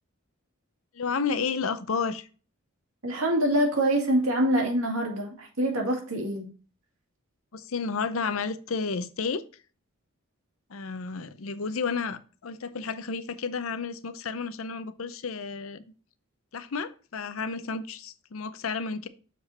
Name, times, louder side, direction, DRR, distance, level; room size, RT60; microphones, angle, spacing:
voice 1, 0.9-2.3 7.5-9.4 10.7-15.8 16.5-19.1, left 5 dB, 75° left, 0.6 m, -31 dB
voice 2, 3.0-6.5, right 1 dB, 75° right, 2.2 m, -25 dB
6.9 x 5.0 x 4.1 m
head